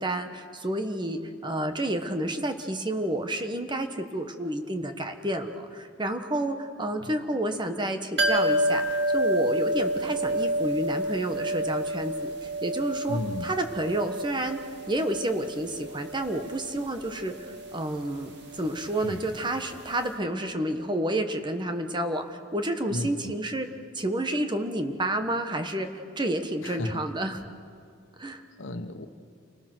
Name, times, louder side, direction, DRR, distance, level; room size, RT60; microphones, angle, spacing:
voice 1, 0.0-14.6 14.9-23.7 23.9-27.4 28.2-28.4, right 1 dB, 25° right, 7 dB, 1.3 m, -30 dB
sound 1, 8.2-19.8 20.0-20.1, right 1 dB, 60° right, 2.3 m, -30 dB
voice 2, 13.1-13.5 19.0-19.2 22.9-23.3 26.6-27.0 28.6-29.1, left 1 dB, 85° left, 8 dB, 1.3 m, -33 dB
29.0 x 20.5 x 6.2 m, 2.3 s
head